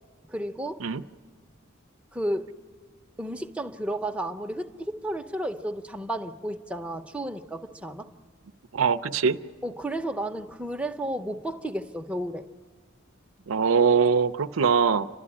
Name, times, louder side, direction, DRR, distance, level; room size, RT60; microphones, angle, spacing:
voice 1, 0.3-0.8 2.1-2.5 3.2-8.1 9.6-12.4, right 1 dB, 5° right, 0.8 m, -32 dB
voice 2, 8.7-9.4 13.5-15.1, right 6 dB, 80° right, 0.6 m, -22 dB
29.5 x 12.5 x 9.8 m
head